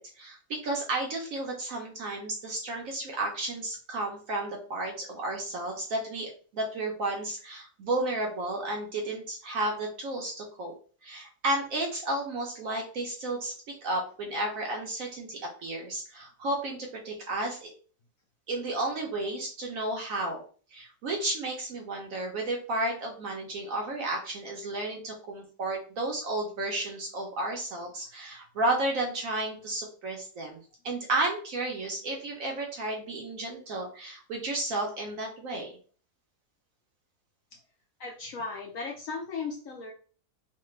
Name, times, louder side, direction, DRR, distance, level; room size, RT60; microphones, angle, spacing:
voice 1, 0.0-10.7 11.0-17.7 18.5-20.4 20.7-30.6 30.8-35.8, right 2 dB, 65° right, 0 dB, 0.9 m, -32 dB
voice 2, 38.0-39.9, left 4 dB, 70° left, 0 dB, 0.8 m, -36 dB
3.2 x 2.1 x 3.1 m, 0.41 s
omnidirectional pair, 1.8 m